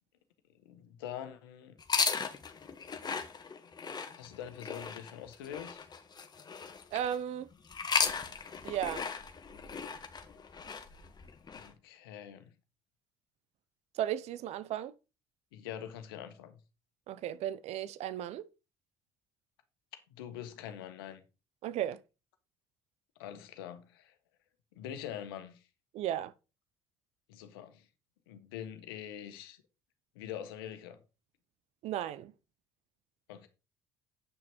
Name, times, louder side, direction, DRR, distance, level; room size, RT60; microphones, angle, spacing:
voice 1, 0.6-1.8 4.1-5.8 11.5-12.5 15.5-16.5 20.1-21.2 23.2-24.1 24.7-25.6 27.3-27.9 28.3-29.6 30.1-31.0 33.3-33.5, left 10 dB, 85° left, 1.4 m, -44 dB
sound 1, 1.8-7.2 7.7-11.7, left 5 dB, 35° left, 1.7 m, -36 dB
voice 2, 6.9-7.5 8.6-9.1 14.0-14.9 17.1-18.5 21.6-22.0 25.9-26.3 31.8-32.3, right 11 dB, 65° right, 0.8 m, -35 dB
9.5 x 6.1 x 4.6 m
hypercardioid pair, 60°, 12 cm